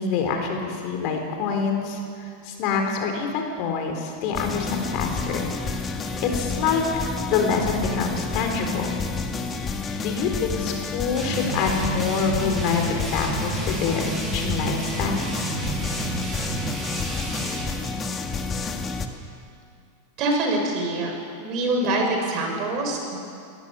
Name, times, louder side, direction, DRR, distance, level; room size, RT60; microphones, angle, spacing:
voice 1, 0.0-5.5 6.2-9.0 9.6-9.7 10.0-15.3 17.2-17.4, left 5 dB, 50° left, 3 dB, 4.0 m, -26 dB
sound 1, 4.3-19.1, left 4 dB, 25° left, 1.8 m, -30 dB
sound 2, 11.1-17.7, right 3 dB, 25° right, 7.2 m, -31 dB
voice 2, 20.2-21.1 21.4-23.2, right 2 dB, 45° right, 1 dB, 6.1 m, -24 dB
20.5 x 14.5 x 9.8 m, 2.4 s
hypercardioid pair, 120°, 0 cm